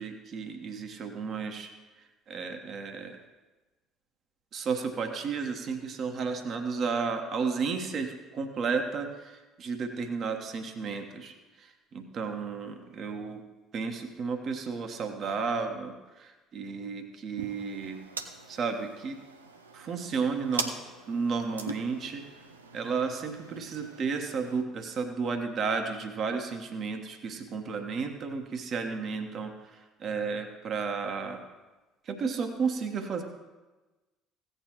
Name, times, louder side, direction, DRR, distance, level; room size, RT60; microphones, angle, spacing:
voice 1, 0.0-1.7 2.3-3.2 4.5-13.4 13.7-18.0 18.5-19.2 19.7-20.7 21.1-22.2 22.7-31.4 32.1-33.2, right 5 dB, 50° right, 5 dB, 1.2 m, -33 dB
sound 1, 17.4-24.6, right 4 dB, 90° right, 0.5 m, -42 dB
16.0 x 9.2 x 3.0 m, 1.2 s
figure-of-eight pair, 55°, 0 cm